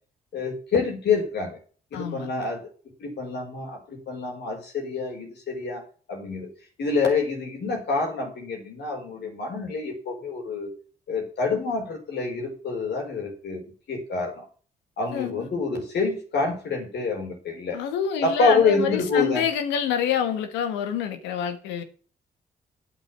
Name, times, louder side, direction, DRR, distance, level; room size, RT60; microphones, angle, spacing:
voice 1, 0.3-1.6 1.9-2.7 3.0-5.8 6.1-6.5 6.8-10.7 11.1-13.6 13.9-14.5 15.0-17.8 18.2-19.4, left 4 dB, 70° left, 4.8 m, -27 dB
voice 2, 1.9-2.3 15.1-15.5 17.7-21.8, left 8 dB, 85° left, 1.4 m, -27 dB
9.1 x 7.6 x 7.2 m
hypercardioid pair, 40°, 18 cm